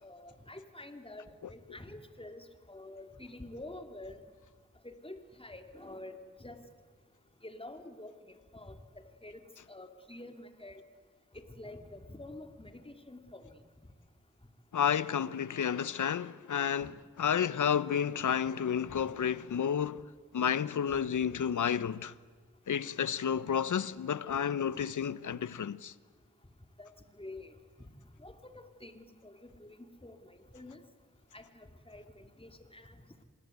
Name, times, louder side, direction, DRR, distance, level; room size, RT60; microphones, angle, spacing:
voice 1, 0.0-4.2 4.8-6.6 7.4-8.8 9.2-9.4 9.7-10.8 11.3-13.6 16.8-16.9 18.9-19.0 26.8-27.5 28.2-30.8 31.3-33.0, left 1 dB, 20° left, 3.3 m, -48 dB
voice 2, 14.7-20.0 20.3-22.1 22.7-25.9, left 8 dB, 75° left, 0.9 m, -31 dB
25.5 x 21.0 x 9.5 m
cardioid pair, 40°, 31 cm